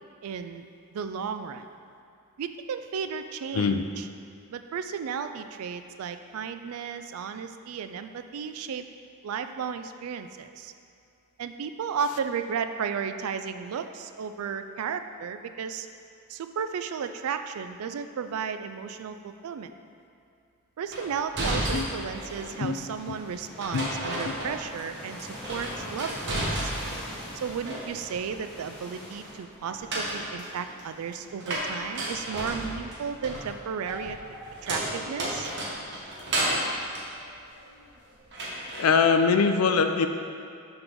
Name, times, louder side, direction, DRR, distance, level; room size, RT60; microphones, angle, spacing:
voice 1, 0.2-0.6 0.9-1.7 2.4-4.1 4.5-8.8 9.2-10.7 11.4-15.9 16.3-19.7 20.8-25.2 25.5-26.7 27.4-34.2 34.6-35.5, right 6 dB, 75° right, 9 dB, 0.3 m, -34 dB
sound 1, 20.9-22.6 23.6-24.9 25.2-27.1 27.4-28.2 29.6-37.9 38.3-38.9, right 1 dB, 55° right, 1.1 m, -33 dB
sound 2, 21.4-29.4, equal, 5° left, 1.3 m, -43 dB
voice 2, 38.8-40.1, left 5 dB, 75° left, 7 dB, 0.4 m, -22 dB
5.7 x 3.8 x 5.3 m, 2.5 s
head